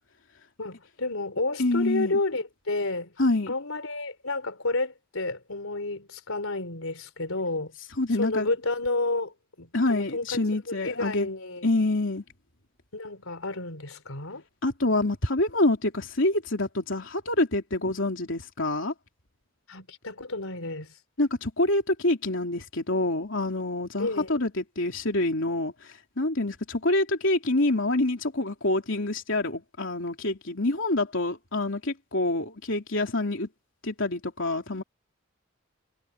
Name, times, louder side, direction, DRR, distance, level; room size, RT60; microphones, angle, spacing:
voice 1, 0.6-3.1 3.5-7.7 8.2-10.4 10.7-11.7 12.9-14.4 19.7-20.9 24.0-24.4, left 2 dB, 85° left, 3.7 m, -31 dB
voice 2, 1.6-2.2 3.2-3.5 8.0-8.5 9.7-11.3 11.6-12.2 14.6-18.9 21.2-33.5 33.8-34.8, left 2 dB, 65° left, 3.3 m, -26 dB
head